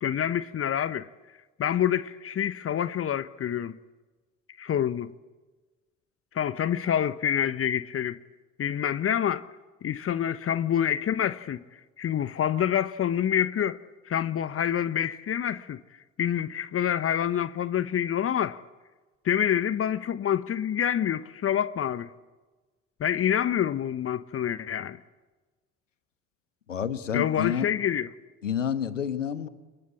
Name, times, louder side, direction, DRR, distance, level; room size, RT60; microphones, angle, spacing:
voice 1, 0.0-1.1 1.6-3.8 4.6-5.1 6.3-8.2 8.6-9.5 9.8-15.8 16.2-18.6 19.2-22.1 23.0-25.0 27.1-28.1, left 9 dB, 40° left, 1.0 m, -27 dB
voice 2, 26.7-27.7 28.4-29.5, left 8 dB, 85° left, 1.2 m, -29 dB
26.5 x 22.5 x 8.5 m
figure-of-eight pair, 55°, 36 cm